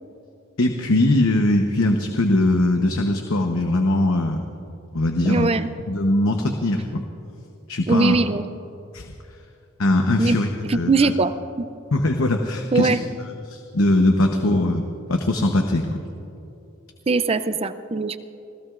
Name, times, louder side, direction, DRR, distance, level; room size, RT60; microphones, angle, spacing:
voice 1, 0.6-4.5 4.9-5.5 5.9-7.0 7.7-8.2 8.9-9.1 9.8-11.1 11.9-13.0 13.5-14.8 15.1-16.0, left 1 dB, 85° left, 4 dB, 1.0 m, -21 dB
voice 2, 5.2-5.7 7.9-8.4 10.2-10.4 10.6-11.7 12.7-13.0 17.1-18.2, right 3 dB, 30° right, 12 dB, 0.5 m, -21 dB
27.5 x 16.0 x 2.5 m, 2.9 s
head